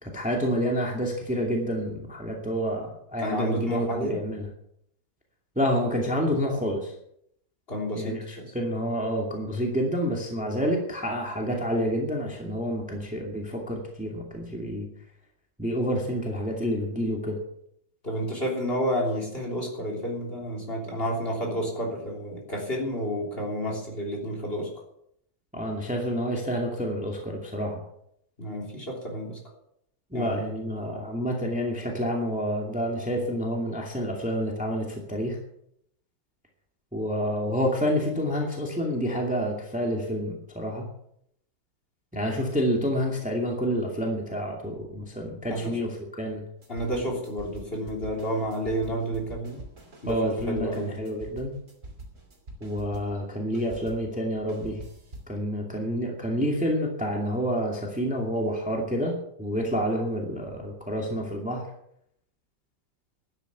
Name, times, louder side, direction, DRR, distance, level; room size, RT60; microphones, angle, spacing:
voice 1, 0.0-4.5 5.6-6.9 8.0-14.9 15.6-17.4 25.5-27.8 30.1-35.4 36.9-40.9 42.1-46.4 50.1-51.5 52.6-54.8 55.3-61.7, equal, 5° right, 0 dB, 2.2 m, -28 dB
voice 2, 3.2-4.2 7.7-8.5 18.0-24.7 28.4-29.4 30.1-30.5 45.5-45.8 46.7-49.6 50.0-50.9, equal, 30° left, 0 dB, 3.6 m, -30 dB
sound 1, 46.6-53.3 53.5-55.4, right 1 dB, 40° right, 3.1 m, -45 dB
12.0 x 10.5 x 6.9 m, 0.73 s
omnidirectional pair, 2.0 m